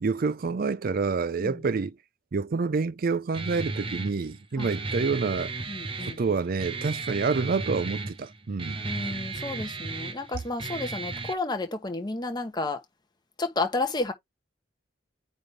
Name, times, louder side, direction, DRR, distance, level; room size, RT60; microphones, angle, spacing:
voice 1, 0.0-2.0 2.3-5.5 6.0-9.1, right 4 dB, 50° right, 0.4 m, -28 dB
Guitar, 3.3-11.3, right 3 dB, 30° right, 0.8 m, -35 dB
voice 2, 5.7-6.2 8.8-12.8 13.4-14.1, left 3 dB, 20° left, 1.1 m, -31 dB
8.9 x 3.5 x 3.2 m
head